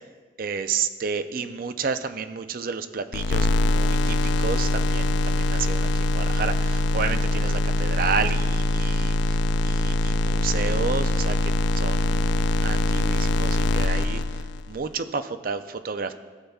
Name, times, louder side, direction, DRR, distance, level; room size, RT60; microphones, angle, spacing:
voice 1, 0.4-9.4 9.6-14.2 14.7-16.1, right 5 dB, 50° right, 10 dB, 0.4 m, -31 dB
sound 1, 3.1-14.8, left 2 dB, 75° left, 0.3 m, -23 dB
16.5 x 6.8 x 2.4 m, 1.4 s
head